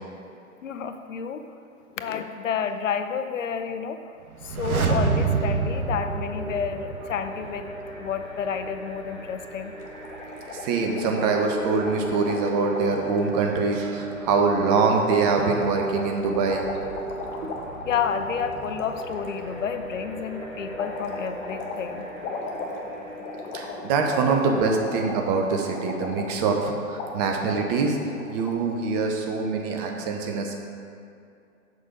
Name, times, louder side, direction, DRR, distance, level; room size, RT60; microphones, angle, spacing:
voice 1, 0.6-1.5 1.9-4.0 4.4-7.7 8.0-9.7 17.8-22.1, left 7 dB, 60° left, 8 dB, 0.7 m, -30 dB
sound 1, 4.3-7.3 7.5-7.6, right 5 dB, 80° right, 1.0 m, -26 dB
sound 2, 4.9-24.4, right 2 dB, ahead, 1.2 m, -37 dB
sound 3, 9.8-13.4 15.1-19.4 20.8-26.7 27.0-27.1 27.4-28.5, left 4 dB, 15° left, 0.7 m, -37 dB
voice 2, 10.5-16.6 17.4-17.5 23.5-28.0 28.3-30.5, right 4 dB, 30° right, 2 dB, 0.9 m, -24 dB
6.8 x 6.6 x 5.2 m, 2.5 s
figure-of-eight pair, 120°, 43 cm